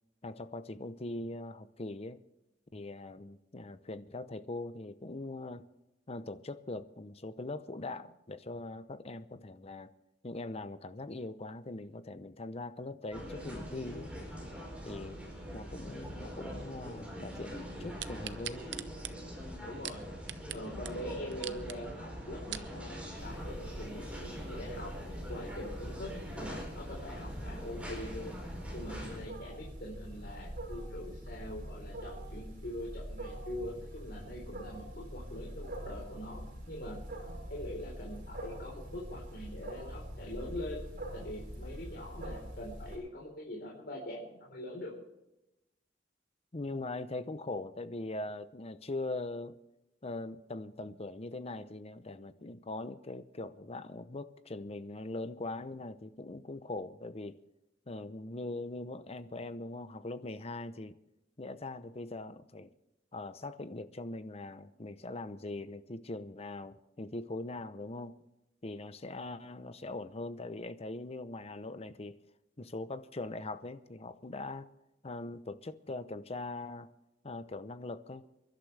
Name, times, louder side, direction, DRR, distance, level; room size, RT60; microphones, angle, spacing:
voice 1, 0.2-2.2 2.7-5.6 6.1-9.9 10.2-14.1 14.8-15.2 15.5-18.6 46.5-49.6 50.0-57.4 57.9-61.0 61.4-62.7 63.1-68.1 68.6-72.2 72.6-74.7 75.0-76.9 77.2-78.3, left 2 dB, 35° left, 12 dB, 0.8 m, -41 dB
sound 1, 13.1-29.2, equal, 5° right, 4.8 m, -43 dB
sound 2, 18.0-20.6 20.8-20.9 21.3-21.8 22.2-22.7 23.3-23.4, right 12 dB, 70° right, 0.7 m, -41 dB
voice 2, 19.6-20.0 20.5-24.9 25.3-28.3 28.7-37.0 37.5-40.8 41.1-44.9, left 1 dB, 60° left, -3 dB, 4.1 m, -43 dB
Wild animals, 23.2-42.9, equal, 55° right, 5.7 m, -44 dB
28.5 x 12.0 x 3.4 m, 0.93 s
head